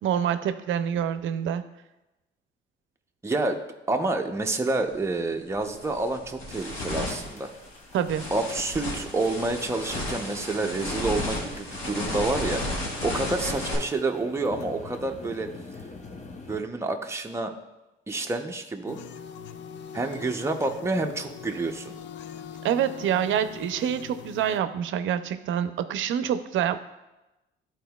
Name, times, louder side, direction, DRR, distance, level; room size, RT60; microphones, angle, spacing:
voice 1, 0.0-1.6 7.9-8.2 22.6-26.8, right 9 dB, 70° right, 11 dB, 0.5 m, -26 dB
voice 2, 3.2-3.6 3.9-7.5 8.3-12.6 13.0-15.5 16.5-17.5 18.1-19.0 19.9-21.9, right 2 dB, 15° right, 3 dB, 0.7 m, -28 dB
sound 1, 4.9-5.1 5.5-13.8, left 1 dB, 85° left, 1.9 m, -33 dB
sound 2, 6.5-16.6, left 3 dB, 35° left, 0.8 m, -47 dB
sound 3, 18.9-24.6, left 7 dB, 65° left, 0.4 m, -42 dB
12.0 x 4.3 x 2.3 m, 0.99 s
cardioid pair, 85°, 20 cm